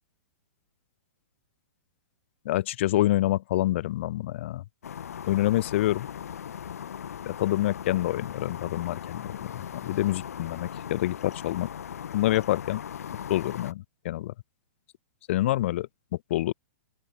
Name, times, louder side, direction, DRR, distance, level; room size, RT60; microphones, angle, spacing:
voice 1, 2.4-4.6 5.3-6.1 7.3-11.7 12.1-12.8 13.3-14.3 15.3-15.9 16.3-16.5, left 15 dB, 55° left, 0.6 m, -27 dB
sound 1, 4.8-13.7, left 8 dB, 80° left, 2.0 m, -38 dB
open air
hypercardioid pair, 140°, 8 cm